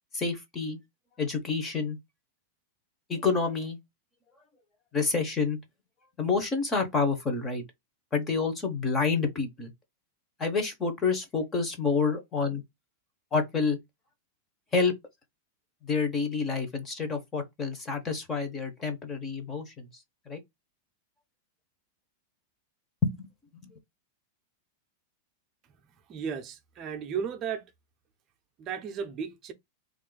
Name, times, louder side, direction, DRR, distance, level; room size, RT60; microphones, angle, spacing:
voice 1, 0.1-0.8 1.2-2.0 3.1-3.8 4.9-5.6 6.2-7.6 8.1-9.7 10.4-12.6 13.3-13.8 14.7-14.9 15.8-19.9 20.3-20.4 23.0-23.3 23.6-23.7, left 4 dB, 15° left, 0.8 m, -28 dB
voice 2, 26.1-27.6 28.6-29.5, right 7 dB, 25° right, 0.6 m, -34 dB
3.7 x 2.5 x 3.8 m
supercardioid pair, 165°, 0 cm